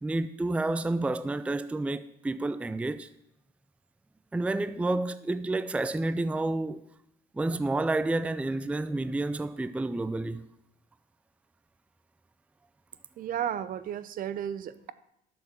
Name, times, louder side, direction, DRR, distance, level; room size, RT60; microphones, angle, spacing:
voice 1, 0.0-3.1 4.3-6.8 7.3-10.4, right 2 dB, 10° right, 0.4 m, -30 dB
voice 2, 13.2-14.9, right 9 dB, 55° right, 0.7 m, -33 dB
11.5 x 7.0 x 7.2 m
cardioid pair, 110°, 17 cm